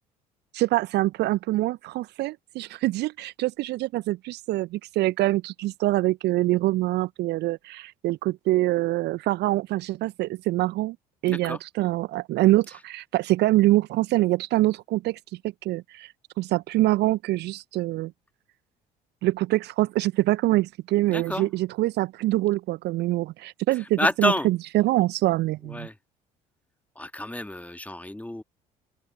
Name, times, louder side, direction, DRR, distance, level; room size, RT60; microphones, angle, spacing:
voice 1, 0.5-11.0 11.2-15.2 15.6-16.1 16.4-18.1 19.2-25.9, right 17 dB, 55° right, 0.8 m, -24 dB
voice 2, 11.3-11.6 21.1-21.5 24.0-24.5 25.7-26.0 27.0-28.4, left 1 dB, 5° left, 2.1 m, -28 dB
open air
figure-of-eight pair, 55°, 20 cm